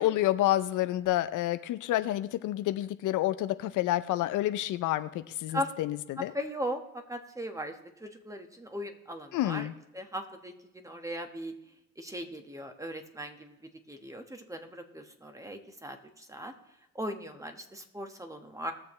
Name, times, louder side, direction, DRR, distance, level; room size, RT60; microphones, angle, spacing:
voice 1, 0.0-6.3 9.3-9.7, left 14 dB, 85° left, 12 dB, 0.6 m, -29 dB
voice 2, 6.2-9.7 9.9-11.5 12.0-13.6 13.9-16.5 16.9-18.7, equal, 10° right, 6 dB, 1.4 m, -38 dB
20.0 x 6.9 x 3.2 m, 0.87 s
cardioid pair, 90°, 30 cm